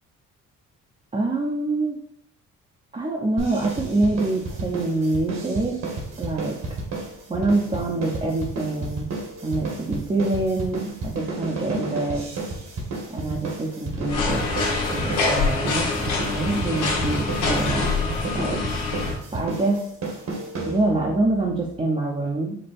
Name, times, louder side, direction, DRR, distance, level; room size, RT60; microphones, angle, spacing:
voice 1, 1.1-2.0 2.9-5.8 6.2-6.6 7.3-9.1 9.4-12.3 13.1-14.5 14.9-15.9 16.3-18.6 19.3-19.8 20.6-22.6, right 2 dB, 20° right, -2 dB, 0.8 m, -25 dB
sound 1, 3.4-21.1, right 2 dB, 60° right, 1.6 m, -32 dB
sound 2, 14.1-19.2, left 3 dB, 85° left, 1.5 m, -25 dB
5.4 x 2.2 x 4.3 m, 0.67 s
cardioid pair, 90°, 30 cm